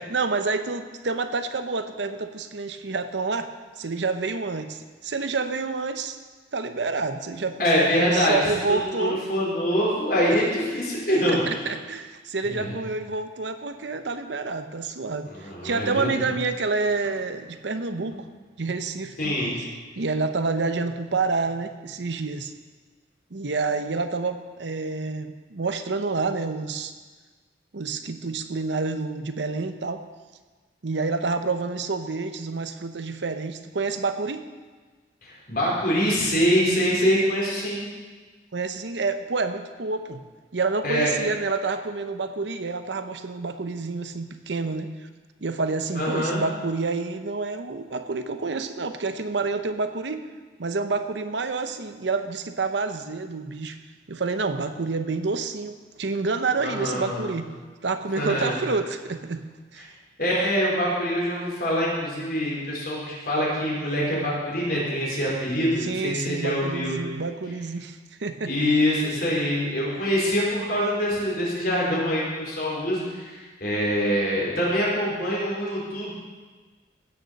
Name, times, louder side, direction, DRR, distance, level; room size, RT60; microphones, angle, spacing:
voice 1, 0.0-6.2 6.5-9.2 10.3-10.4 11.3-18.3 18.6-19.2 20.0-22.5 23.3-26.9 27.7-30.0 30.8-34.4 38.5-40.2 40.5-44.9 45.4-50.2 50.6-53.8 54.1-57.5 57.8-59.4 59.7-59.9 65.8-68.5, right 3 dB, 75° right, 9 dB, 0.8 m, -28 dB
voice 2, 7.6-11.7 12.4-12.8 15.3-16.3 19.2-19.5 35.2-37.8 40.8-41.1 45.9-46.4 56.6-57.3 58.2-58.6 60.2-67.0 68.5-76.1, equal, 55° left, -5 dB, 4.3 m, -24 dB
16.0 x 6.7 x 6.5 m, 1.4 s
head